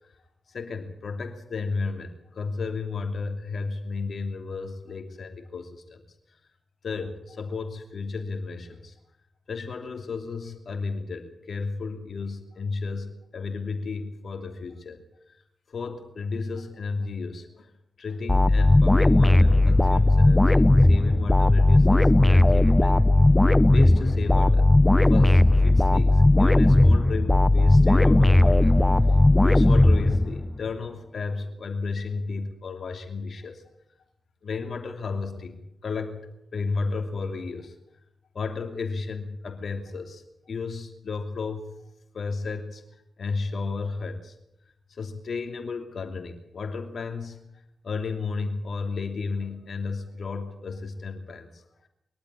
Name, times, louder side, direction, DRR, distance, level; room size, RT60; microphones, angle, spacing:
voice 1, 0.5-6.0 6.8-8.9 9.5-15.0 15.7-17.7 18.0-23.0 23.7-24.7 25.1-28.8 29.4-33.6 34.4-37.7 38.3-41.8 42.1-42.8 43.2-44.3 44.9-47.4 47.8-51.6, left 4 dB, 65° left, 6 dB, 2.9 m, -33 dB
sound 1, 18.3-30.6, left 2 dB, 15° left, 0.9 m, -17 dB
22.5 x 12.5 x 9.9 m, 0.83 s
supercardioid pair, 45°, 0 cm